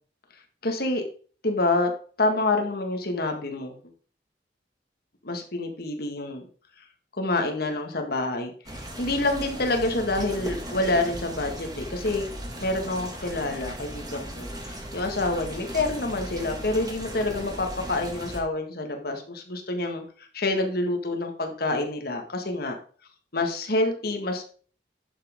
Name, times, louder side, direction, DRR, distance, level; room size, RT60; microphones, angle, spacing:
voice 1, 0.6-1.0 1.4-1.9 2.2-3.8 5.2-6.4 7.2-12.3 12.6-20.0 20.3-22.8 23.3-24.4, left 2 dB, 60° left, 4 dB, 1.8 m, -27 dB
sound 1, 8.7-18.4, equal, 20° right, 1.8 m, -37 dB
11.0 x 7.4 x 3.8 m, 0.42 s
head